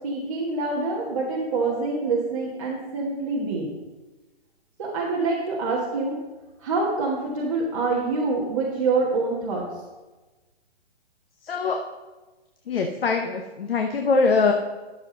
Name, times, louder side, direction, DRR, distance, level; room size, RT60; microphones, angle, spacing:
voice 1, 0.0-3.7 4.8-6.1 6.6-9.6, right 3 dB, 30° right, -5 dB, 1.4 m, -26 dB
voice 2, 11.4-11.8 12.7-14.5, left 4 dB, 60° left, 3 dB, 1.0 m, -22 dB
12.0 x 6.9 x 3.8 m, 1.2 s
hypercardioid pair, 175°, 33 cm